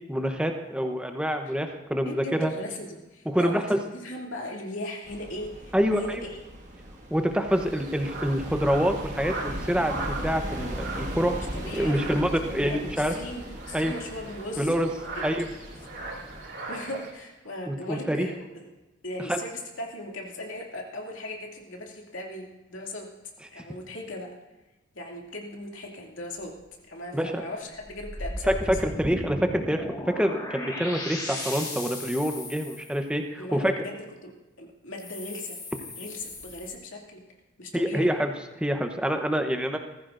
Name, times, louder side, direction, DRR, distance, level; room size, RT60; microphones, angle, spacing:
voice 1, 0.1-2.5 3.3-3.8 5.7-6.2 7.1-11.4 11.7-13.1 13.7-13.9 14.6-14.9 15.2-15.5 17.7-18.3 19.3-19.4 23.6-23.7 27.1-27.4 28.4-33.8 37.7-38.3 38.6-39.8, equal, 5° right, 5 dB, 0.8 m, -26 dB
voice 2, 2.1-6.4 11.4-12.1 12.5-15.2 16.7-18.7 19.0-23.1 23.5-24.3 24.9-26.6 26.9-28.8 33.4-34.0 34.2-35.6 36.0-37.2 37.6-38.1, left 1 dB, 80° left, -1 dB, 2.5 m, -38 dB
sound 1, 5.0-16.4, right 1 dB, 40° right, 1.8 m, -38 dB
sound 2, 7.5-17.1, right 3 dB, 65° right, 3.0 m, -40 dB
sound 3, 27.8-33.0 35.0-36.7, left 1 dB, 20° left, 1.7 m, -37 dB
19.5 x 14.5 x 2.6 m, 1.1 s
head